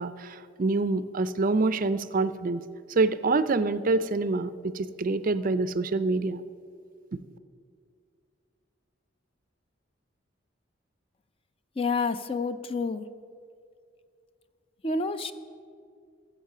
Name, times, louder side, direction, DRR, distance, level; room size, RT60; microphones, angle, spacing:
voice 1, 0.0-2.6 2.9-6.4 7.1-7.2, right 3 dB, 45° right, 13 dB, 0.4 m, -26 dB
voice 2, 11.8-13.1 14.8-15.3, left 4 dB, 30° left, 10 dB, 0.5 m, -28 dB
15.0 x 7.4 x 6.6 m, 2.3 s
head